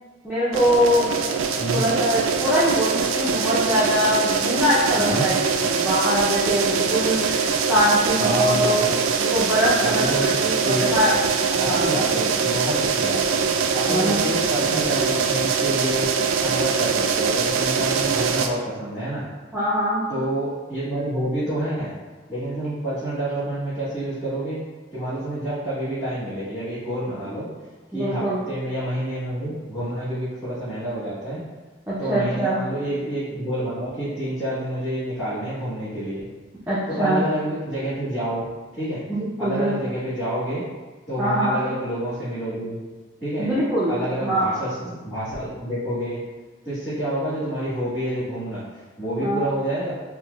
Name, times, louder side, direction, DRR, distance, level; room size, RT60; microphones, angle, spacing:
voice 1, 0.2-1.2 1.7-8.8 9.2-11.1 11.5-12.0 13.9-14.3 19.5-20.0 27.9-28.4 31.9-32.6 36.7-37.2 39.1-39.8 41.2-41.6 43.4-44.6 49.2-49.4, equal, 5° right, -10 dB, 0.4 m, -23 dB
sound 1, 0.5-18.5, right 5 dB, 80° right, 0.3 m, -23 dB
voice 2, 8.2-9.0 9.8-10.3 10.6-11.2 11.7-13.4 13.7-16.1 16.4-19.2 20.1-21.9 22.3-24.6 24.9-27.5 27.9-31.4 32.0-36.2 36.9-38.4 38.8-39.0 39.4-40.6 41.1-42.8 43.2-43.5 43.9-46.2 46.6-48.6 49.0-49.9, right 1 dB, 15° left, -16 dB, 1.3 m, -28 dB
4.5 x 2.3 x 2.3 m, 1.3 s
head